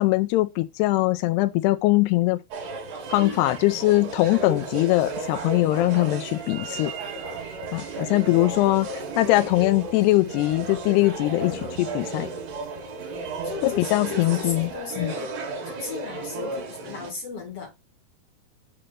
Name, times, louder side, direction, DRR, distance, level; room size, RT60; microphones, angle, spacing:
voice 1, 0.0-2.4 3.1-6.9 7.7-8.9 9.1-11.5 11.8-12.3 13.6-14.7 15.0-15.1, left 18 dB, 80° left, 2.5 m, -21 dB
sound 1, 2.5-17.1, right 3 dB, 70° right, 3.9 m, -34 dB
sound 2, 2.8-14.8, right 12 dB, 85° right, 3.4 m, -46 dB
voice 2, 3.2-3.5 8.1-8.7 11.4-11.7 13.4-15.3 15.6-17.7, left 4 dB, 45° left, 2.3 m, -37 dB
7.8 x 3.3 x 5.6 m
omnidirectional pair, 5.1 m